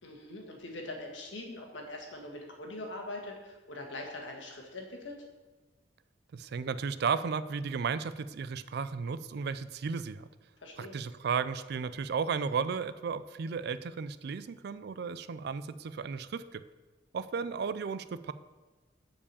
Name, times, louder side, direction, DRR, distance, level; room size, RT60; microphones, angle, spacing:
voice 1, 0.0-5.2 10.6-11.0, left 2 dB, 80° left, 1 dB, 1.6 m, -42 dB
voice 2, 6.3-10.3 10.8-16.6 17.1-18.3, right 5 dB, 60° right, 14 dB, 0.4 m, -34 dB
7.2 x 5.0 x 6.8 m, 1.2 s
head